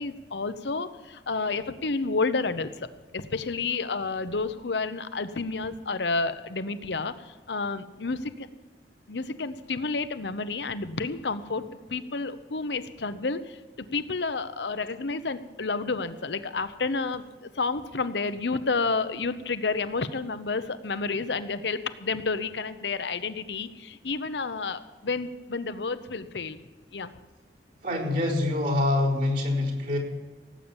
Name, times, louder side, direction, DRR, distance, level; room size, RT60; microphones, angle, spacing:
voice 1, 0.0-2.9 3.1-8.5 9.1-26.6 26.9-27.1, left 4 dB, 75° left, 12 dB, 0.8 m, -30 dB
voice 2, 27.8-30.0, left 2 dB, 60° right, -4 dB, 4.4 m, -25 dB
17.5 x 8.5 x 7.3 m, 1.3 s
head